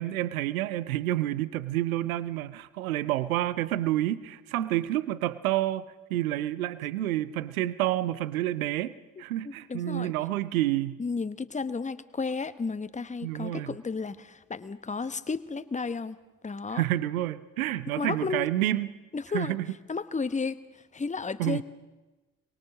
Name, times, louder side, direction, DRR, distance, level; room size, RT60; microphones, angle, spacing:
voice 1, 0.0-11.0 13.2-13.8 16.7-18.9 19.3-19.7 21.4-21.6, right 14 dB, 75° right, 17 dB, 0.8 m, -29 dB
voice 2, 9.4-10.1 11.0-16.2 16.4-16.8 17.9-18.5 19.1-19.6 19.9-21.6, left 4 dB, 15° left, 13 dB, 1.2 m, -33 dB
23.5 x 23.0 x 6.4 m, 1.2 s
figure-of-eight pair, 45°, 42 cm